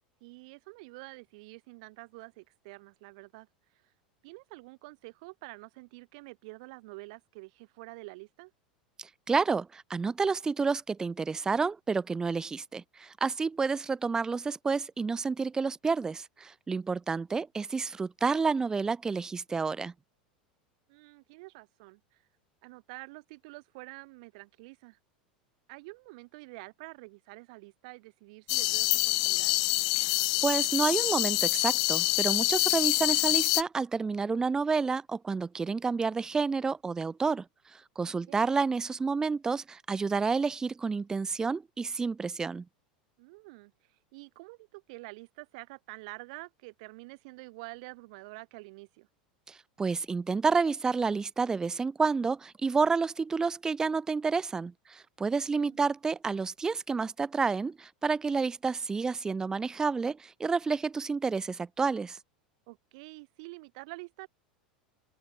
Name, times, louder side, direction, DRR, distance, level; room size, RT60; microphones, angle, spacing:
voice 1, 0.2-3.5 4.2-8.5 20.9-22.2 22.6-25.0 25.7-29.6 38.3-38.4 43.2-43.7 44.1-49.1 55.3-55.8 62.7-64.3, right 26 dB, 55° right, 7.1 m, -47 dB
voice 2, 9.0-19.9 30.0-30.1 30.4-37.4 37.7-42.6 49.5-62.2, right 4 dB, 15° right, 0.6 m, -30 dB
sound 1, 28.5-33.6, left 27 dB, 50° left, 0.5 m, -26 dB
figure-of-eight pair, 80°, 5 cm